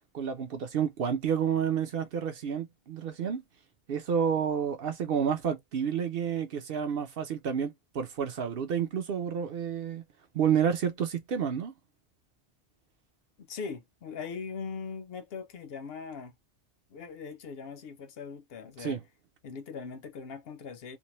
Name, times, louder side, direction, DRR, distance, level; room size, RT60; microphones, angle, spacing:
voice 1, 0.1-3.4 3.9-10.0 10.3-11.7 18.8-19.0, right 7 dB, 60° right, 0.7 m, -30 dB
voice 2, 13.4-16.3 16.9-19.0 19.4-21.0, left 5 dB, 65° left, 0.7 m, -40 dB
2.6 x 2.0 x 2.9 m
omnidirectional pair, 1.2 m